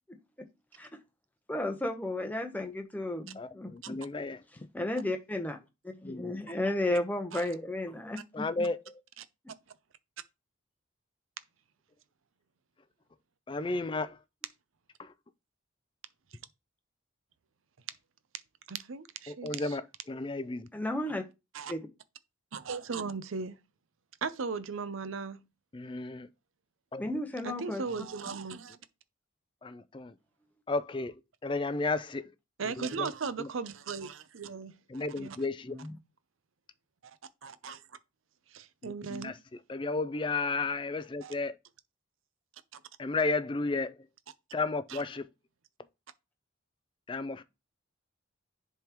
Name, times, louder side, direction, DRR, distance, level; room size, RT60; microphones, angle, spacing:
voice 1, 1.5-4.0 4.7-5.6 5.8-8.7 20.7-21.2 21.7-21.8 27.0-27.8 35.7-36.0, left 1 dB, 10° left, 0.8 m, -33 dB
voice 2, 3.4-4.4 6.1-6.3 8.3-8.8 13.5-14.1 19.4-19.8 20.1-20.7 25.7-26.3 26.9-27.0 29.6-30.1 30.7-31.1 31.4-32.2 34.9-35.7 39.1-39.3 39.7-41.5 43.0-43.9 44.5-45.2 47.1-47.4, left 3 dB, 25° left, 0.4 m, -32 dB
voice 3, 18.7-19.8 21.5-21.7 22.5-23.6 24.2-25.4 27.4-28.8 32.6-35.5 37.0-37.8 38.5-39.4 41.2-41.3 42.7-42.8 44.9-45.0, right 5 dB, 80° right, 0.6 m, -38 dB
10.5 x 3.6 x 3.0 m
head